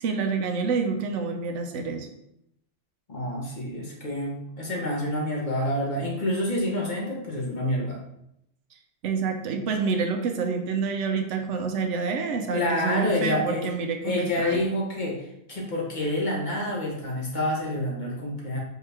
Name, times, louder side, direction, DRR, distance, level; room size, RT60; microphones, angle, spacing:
voice 1, 0.0-2.1 9.0-14.7, right 5 dB, 75° right, 5 dB, 0.9 m, -28 dB
voice 2, 3.1-8.0 12.5-13.7 14.0-18.6, left 1 dB, 40° left, -3 dB, 1.0 m, -28 dB
4.7 x 3.1 x 3.3 m, 0.78 s
omnidirectional pair, 1.3 m